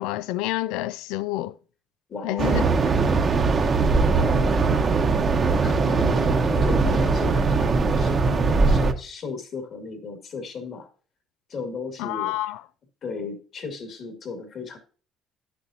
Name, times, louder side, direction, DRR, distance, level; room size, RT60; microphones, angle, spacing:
voice 1, 0.0-1.5 2.2-2.7 12.0-12.6, left 16 dB, 85° left, 0.3 m, -28 dB
voice 2, 2.1-2.9 4.1-4.6 5.6-10.9 11.5-12.3 13.0-14.8, left 4 dB, 55° left, 2.2 m, -35 dB
sound 1, 2.4-8.9, right 4 dB, 40° right, 1.0 m, -20 dB
10.5 x 6.8 x 2.8 m
supercardioid pair, 85°, 0 cm